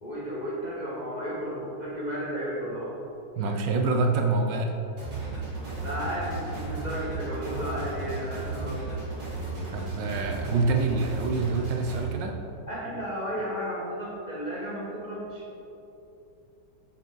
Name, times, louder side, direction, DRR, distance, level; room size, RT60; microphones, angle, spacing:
voice 1, 0.0-2.9 3.4-3.6 5.8-8.8 12.7-15.4, equal, 35° left, -7 dB, 0.7 m, -33 dB
voice 2, 3.4-4.7 9.7-12.3, right 3 dB, 75° right, 3 dB, 1.2 m, -26 dB
sound 1, 5.0-12.0, right 3 dB, 45° right, 2.2 m, -34 dB
7.5 x 5.1 x 3.9 m, 2.8 s
omnidirectional pair, 2.2 m